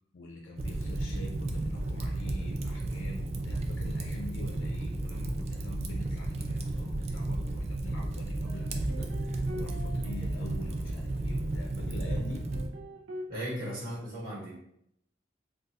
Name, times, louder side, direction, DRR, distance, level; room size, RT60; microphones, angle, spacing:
voice 1, 0.1-12.5, left 1 dB, 80° left, 0 dB, 0.4 m, -45 dB
Fire, 0.6-12.7, right 2 dB, 35° right, 0.3 m, -33 dB
sound 1, 7.9-13.3, equal, 80° right, 0.6 m, -46 dB
voice 2, 13.3-14.5, equal, 50° right, -7 dB, 1.3 m, -36 dB
2.4 x 2.3 x 4.0 m, 0.75 s
head